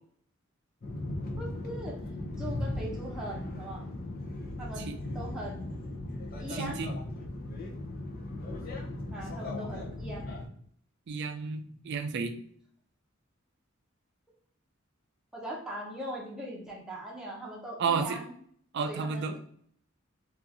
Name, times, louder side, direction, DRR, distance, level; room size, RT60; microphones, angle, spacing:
sound 1, 0.8-10.5, left 1 dB, 45° left, 0.6 m, -37 dB
voice 1, 1.4-2.0 2.4-3.8 4.6-5.7 6.4-6.8 9.1-10.3 15.3-18.3 18.8-19.4, right 1 dB, 5° right, -4 dB, 0.7 m, -40 dB
voice 2, 6.5-7.0 11.1-12.3 17.8-18.2 18.7-19.3, right 5 dB, 55° right, 8 dB, 0.4 m, -31 dB
2.8 x 2.4 x 3.7 m, 0.62 s
head